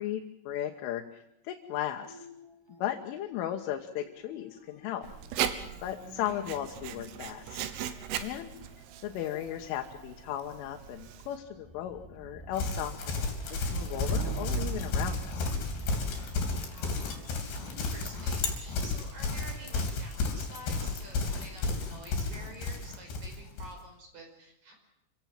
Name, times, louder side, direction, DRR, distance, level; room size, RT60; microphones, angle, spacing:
voice 1, 0.0-2.3 2.8-5.1 5.8-7.6 8.2-8.5 9.0-13.2 13.5-15.4, left 11 dB, 80° left, 3 dB, 3.7 m, -36 dB
sound 1, 2.0-3.4 3.6-18.7 19.4-20.0, right 3 dB, 10° right, 1.3 m, -43 dB
Writing, 5.0-11.4, right 10 dB, 80° right, 3.8 m, -38 dB
voice 2, 6.0-6.4 15.3-15.4 16.7-24.7, right 2 dB, 45° right, 3 dB, 6.6 m, -49 dB
Livestock farm animals working animals, 12.5-23.7, left 3 dB, 60° left, 5.2 m, -33 dB
27.0 x 16.5 x 7.6 m, 0.86 s
omnidirectional pair, 5.7 m